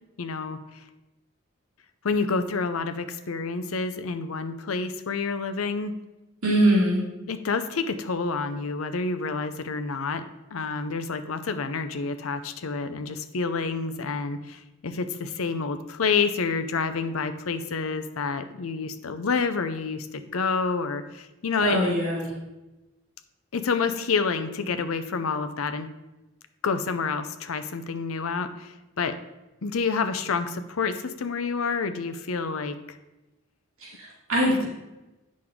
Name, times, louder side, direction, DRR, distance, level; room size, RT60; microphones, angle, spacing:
voice 1, 0.2-0.8 2.0-5.9 7.3-10.3 10.5-21.9 23.5-25.9 26.6-29.2 29.6-33.0, left 4 dB, 85° left, 10 dB, 0.6 m, -28 dB
voice 2, 6.4-7.0 21.6-22.2 33.8-34.7, right 1 dB, 85° right, -5 dB, 2.5 m, -22 dB
8.7 x 6.3 x 3.6 m, 1.0 s
head